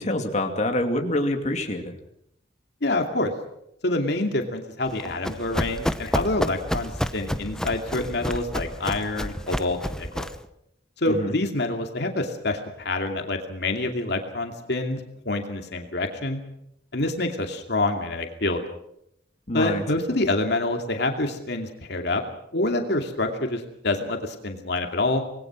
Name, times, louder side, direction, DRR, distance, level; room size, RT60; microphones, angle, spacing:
voice 1, 0.0-1.9 11.1-11.3 19.5-19.8, left 1 dB, 40° left, 4 dB, 2.7 m, -26 dB
voice 2, 2.8-3.3 3.8-10.3 11.0-15.0 15.3-16.4 16.9-18.7 19.5-22.2 22.5-25.2, left 2 dB, 65° left, 4 dB, 2.5 m, -26 dB
Run, 4.9-10.5, equal, 5° left, 0.9 m, -30 dB
26.5 x 20.5 x 6.2 m, 0.77 s
head